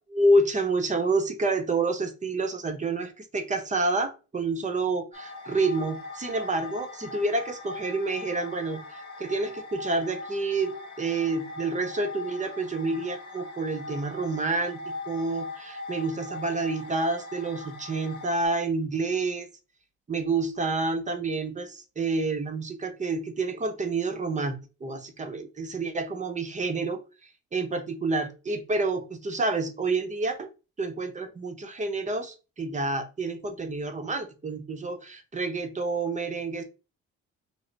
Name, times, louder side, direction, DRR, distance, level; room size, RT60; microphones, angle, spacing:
voice 1, 0.1-8.8 9.2-14.8 15.1-19.5 20.1-24.6 24.8-27.0 27.5-30.5 30.8-36.6, right 3 dB, 25° right, 7 dB, 0.7 m, -28 dB
sound 1, 5.1-18.5, left 3 dB, 70° left, 1.0 m, -40 dB
3.2 x 2.0 x 3.8 m, 0.32 s
cardioid pair, 90°, 30 cm